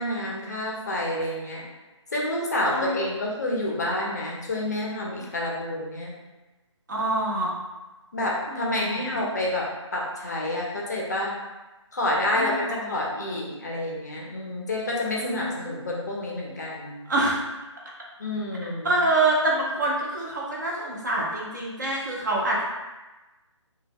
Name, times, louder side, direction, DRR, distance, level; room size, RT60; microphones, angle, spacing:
voice 1, 0.0-1.6 2.1-6.1 8.1-9.7 9.9-11.4 11.9-17.0 18.2-19.0, left 1 dB, 35° left, -3 dB, 0.5 m, -28 dB
voice 2, 2.7-3.0 6.9-7.5 8.5-9.0 12.3-13.0 15.2-15.8 17.1-17.4 18.8-22.6, right 2 dB, 35° right, -3 dB, 0.5 m, -26 dB
2.1 x 2.1 x 3.3 m, 1.1 s
hypercardioid pair, 170°, 16 cm